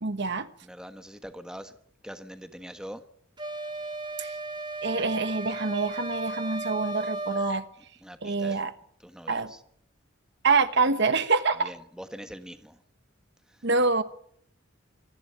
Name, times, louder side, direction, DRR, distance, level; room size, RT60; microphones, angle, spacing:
voice 1, 0.0-0.5 4.2-4.4 4.8-7.6 8.2-8.7 9.3-9.5 10.4-11.7 13.6-14.0, right 4 dB, 60° right, 11 dB, 1.3 m, -26 dB
voice 2, 0.6-1.7 2.0-3.0 8.0-8.6 9.0-9.6 11.6-12.8 13.5-13.7, equal, 5° right, 8 dB, 1.4 m, -43 dB
sound 1, 3.4-7.6, right 2 dB, 25° right, 2.2 m, -35 dB
25.5 x 11.5 x 10.0 m, 0.66 s
head